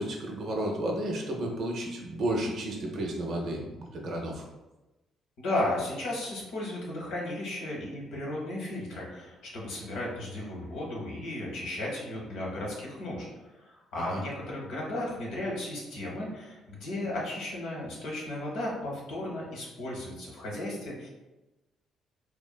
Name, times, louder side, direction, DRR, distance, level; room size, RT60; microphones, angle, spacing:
voice 1, 0.0-4.4 13.9-14.2, right 1 dB, 65° right, 1 dB, 0.5 m, -32 dB
voice 2, 5.4-13.3 13.6-21.1, left 1 dB, 75° left, -3 dB, 0.8 m, -35 dB
2.9 x 2.2 x 2.2 m, 1.0 s
hypercardioid pair, 55°, 0 cm